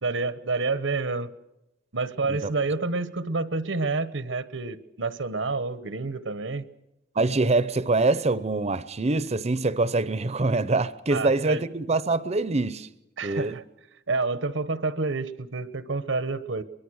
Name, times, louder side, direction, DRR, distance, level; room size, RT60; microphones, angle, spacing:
voice 1, 0.0-1.3 1.9-6.6 11.1-11.6 13.2-13.6 14.1-16.6, right 3 dB, 85° right, 1.2 m, -28 dB
voice 2, 7.2-12.9 13.2-13.6, right 3 dB, 35° right, 0.7 m, -24 dB
23.5 x 21.5 x 6.4 m
head